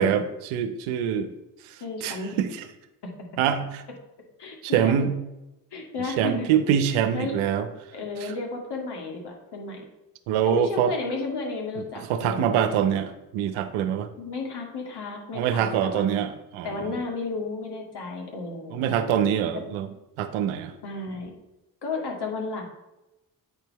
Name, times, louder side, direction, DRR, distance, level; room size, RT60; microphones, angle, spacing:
voice 1, 0.0-1.3 2.0-2.5 3.4-3.8 4.6-5.1 6.2-7.7 8.2-8.3 10.3-10.9 12.0-14.1 15.3-17.0 18.7-19.9 20.2-20.7, right 9 dB, 75° right, 9 dB, 0.8 m, -24 dB
voice 2, 1.8-2.4 4.4-5.0 5.7-6.5 7.1-7.3 7.9-9.8 10.4-12.5 14.2-16.2 16.6-18.9 19.5-19.6 20.8-21.3 21.8-22.6, left 3 dB, 55° left, 1 dB, 2.2 m, -33 dB
8.6 x 4.5 x 4.1 m, 0.96 s
hypercardioid pair, 50°, 49 cm